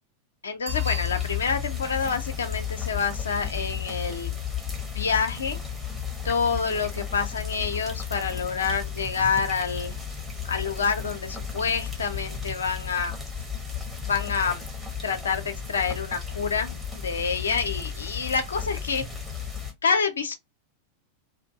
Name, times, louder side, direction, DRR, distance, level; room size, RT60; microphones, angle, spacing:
voice 1, 0.4-4.3 4.9-5.6 6.2-10.0 10.5-13.1 14.1-14.6 15.0-19.0 19.8-20.3, left 5 dB, 70° left, 0.6 m, -27 dB
Bicycle bell, 0.6-1.8 7.2-7.3, right 3 dB, 85° right, 1.6 m, -40 dB
sound 1, 0.7-19.7, left 7 dB, 5° right, 1.0 m, -33 dB
2.7 x 2.5 x 2.4 m
figure-of-eight pair, 90°, 0 cm